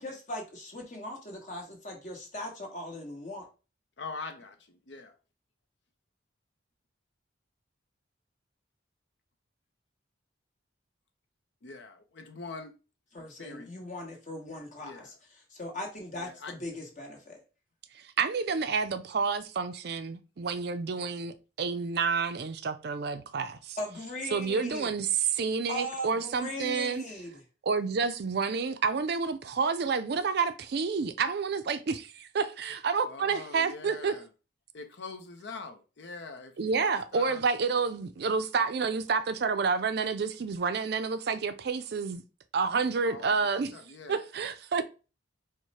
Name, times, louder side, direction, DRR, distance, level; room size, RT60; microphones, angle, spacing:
voice 1, 0.0-3.4 13.1-15.1 15.5-17.4 23.8-24.9 25.7-27.4, left 1 dB, 40° left, 1.2 m, -39 dB
voice 2, 4.0-5.1 11.6-12.7 13.4-13.8 14.8-15.2 16.2-16.8 33.0-34.3 34.7-37.4 43.0-44.2, left 4 dB, 60° left, 0.6 m, -44 dB
voice 3, 18.0-23.8 24.3-27.0 27.6-34.1 36.6-42.2 42.5-43.7 44.1-44.8, right 5 dB, 55° right, 0.4 m, -29 dB
4.7 x 2.1 x 4.1 m
head